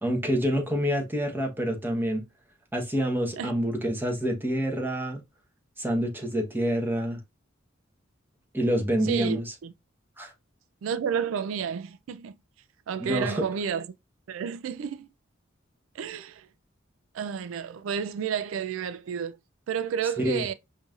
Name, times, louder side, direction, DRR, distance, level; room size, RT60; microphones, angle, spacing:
voice 1, 0.0-2.2 2.7-5.2 5.8-7.2 8.5-9.4 10.2-10.3 13.0-13.4 20.2-20.4, equal, 10° right, 0.9 m, -27 dB
voice 2, 9.0-9.7 10.8-12.4 12.9-13.9 14.3-15.1 15.9-16.5 17.1-19.4 19.7-20.5, right 7 dB, 90° right, 0.3 m, -31 dB
5.4 x 2.6 x 2.4 m
head